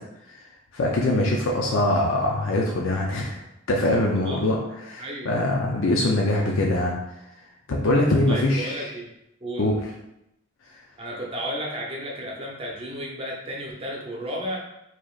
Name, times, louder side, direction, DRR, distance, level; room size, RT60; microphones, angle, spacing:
voice 1, 0.7-3.4 3.7-4.6 4.8-7.0 7.7-8.8 9.6-9.8, left 1 dB, 75° left, -2 dB, 0.5 m, -23 dB
voice 2, 5.0-5.3 8.3-9.1 9.4-9.7 11.0-14.6, equal, 25° right, -2 dB, 0.7 m, -33 dB
4.8 x 2.9 x 2.4 m, 0.86 s
head